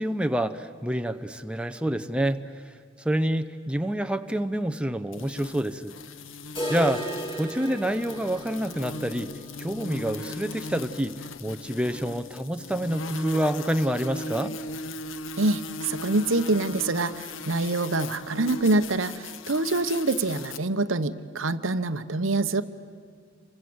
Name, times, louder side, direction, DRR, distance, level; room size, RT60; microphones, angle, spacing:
voice 1, 0.0-2.4 3.0-6.0 6.7-9.3 9.6-14.5, right 1 dB, 5° right, 8 dB, 0.8 m, -28 dB
sound 1, 5.1-20.6, left 2 dB, 75° left, 1.0 m, -38 dB
sound 2, 6.6-12.4 12.7-12.8 13.1-13.2 13.7-13.8 14.7-14.8, right 1 dB, 25° left, 3.4 m, -37 dB
voice 2, 15.4-22.6, right 2 dB, 80° right, 11 dB, 1.0 m, -25 dB
29.5 x 24.5 x 7.9 m, 2.3 s
head